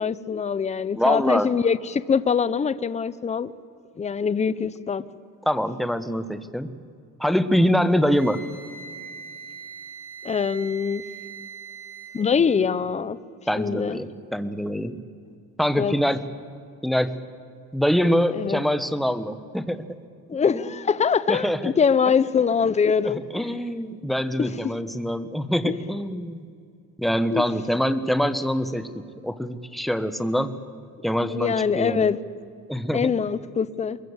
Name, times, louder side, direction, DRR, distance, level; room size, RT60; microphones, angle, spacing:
voice 1, 0.0-3.5 4.0-5.0 10.2-11.0 12.1-13.2 13.6-14.0 15.8-15.9 18.3-18.6 20.3-23.5 24.4-24.5 25.6-25.8 27.3-27.4 31.3-32.2 32.9-34.0, left 6 dB, 20° left, 15 dB, 0.8 m, -23 dB
voice 2, 1.0-1.5 5.4-6.7 7.2-8.4 13.5-15.0 15.6-16.3 16.8-17.2 17.7-20.0 21.3-21.7 23.0-26.4 27.0-30.6 31.0-32.1 32.7-33.1, equal, ahead, 11 dB, 1.2 m, -24 dB
Wind instrument woodwind instrument, 8.1-12.3, right 6 dB, 25° right, 3.9 m, -41 dB
23.5 x 22.0 x 8.1 m, 2.3 s
cardioid pair, 115°, 33 cm